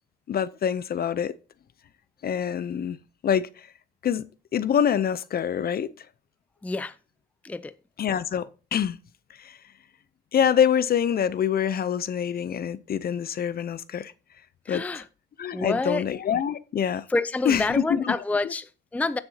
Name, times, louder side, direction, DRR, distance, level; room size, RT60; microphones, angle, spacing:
voice 1, 0.3-1.3 2.2-3.0 3.2-3.7 4.0-4.2 4.5-6.1 8.0-9.0 9.4-9.6 10.3-14.1 14.7-15.0 15.4-17.1 17.4-18.1 18.4-18.5, left 8 dB, 50° left, 0.6 m, -25 dB
voice 2, 6.6-7.0 7.4-7.7 14.7-15.0 15.5-16.0 17.1-19.2, left 3 dB, 5° left, 0.4 m, -28 dB
15.0 x 6.7 x 2.8 m
cardioid pair, 90°, 20 cm